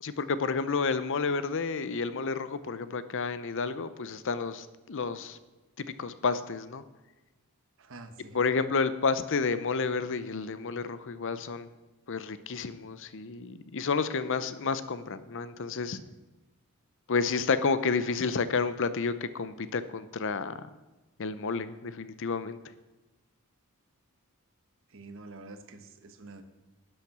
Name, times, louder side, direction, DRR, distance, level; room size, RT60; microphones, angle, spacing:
voice 1, 0.0-5.4 6.0-6.8 8.3-11.7 12.1-16.0 17.1-20.5 21.2-22.6, left 4 dB, 60° left, 13 dB, 0.7 m, -30 dB
voice 2, 7.8-8.4 24.9-26.4, right 3 dB, 60° right, 8 dB, 1.2 m, -47 dB
11.5 x 8.9 x 6.1 m, 1.1 s
head